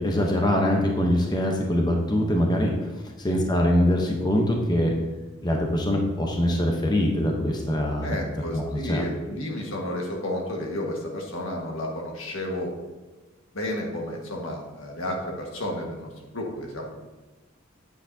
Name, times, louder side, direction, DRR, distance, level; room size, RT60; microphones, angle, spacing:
voice 1, 0.0-2.7 3.2-4.9 5.4-8.2 8.5-9.0, left 1 dB, 20° left, 0 dB, 0.8 m, -23 dB
voice 2, 8.0-12.7 13.5-16.9, left 1 dB, 75° left, 0 dB, 1.6 m, -32 dB
8.9 x 7.9 x 2.7 m, 1.2 s
head